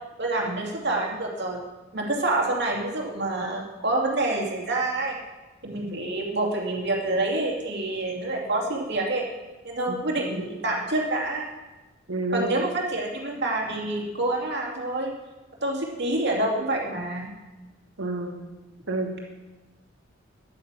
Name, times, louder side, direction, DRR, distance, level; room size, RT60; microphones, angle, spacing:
voice 1, 0.2-1.6 1.9-5.2 5.6-9.3 9.6-11.4 12.3-15.1 15.6-17.3, right 2 dB, 60° right, -1 dB, 2.7 m, -27 dB
voice 2, 12.1-12.5 18.0-18.4 18.9-19.3, right 2 dB, 90° right, 2 dB, 2.3 m, -28 dB
11.5 x 9.4 x 7.6 m, 1.1 s
head